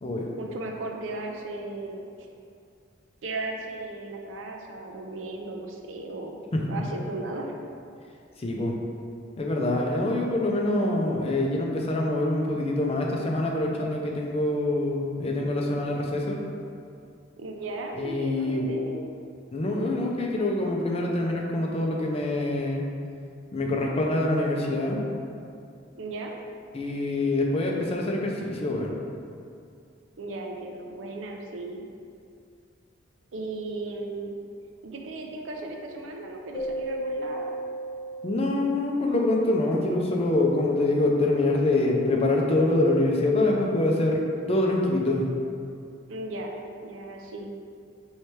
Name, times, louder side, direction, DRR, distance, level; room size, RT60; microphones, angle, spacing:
voice 1, 0.4-2.3 3.2-6.4 6.7-7.6 17.4-19.1 26.0-26.3 30.2-31.9 33.3-34.4 34.8-37.6 46.1-47.5, right 2 dB, 80° right, 2 dB, 0.5 m, -36 dB
voice 2, 8.4-8.8 9.4-16.4 17.9-18.7 19.5-22.9 23.5-25.0 26.7-28.9 38.2-44.2 44.5-45.3, left 2 dB, 30° left, -1 dB, 0.5 m, -25 dB
Keyboard (musical), 36.5-39.3, right 1 dB, 75° left, 0.5 m, -34 dB
4.3 x 3.2 x 3.2 m, 2.4 s
head